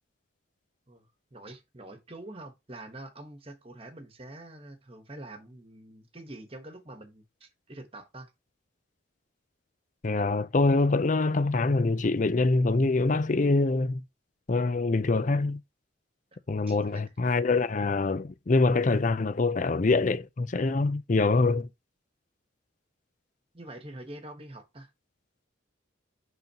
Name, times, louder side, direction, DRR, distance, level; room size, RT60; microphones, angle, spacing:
voice 1, 0.9-8.3 16.3-16.4 16.7-17.0 23.5-24.9, right 1 dB, 30° right, 1.2 m, -45 dB
voice 2, 10.0-14.0 14.5-15.6 16.5-21.7, left 3 dB, 40° left, 0.5 m, -25 dB
11.0 x 3.9 x 2.9 m
head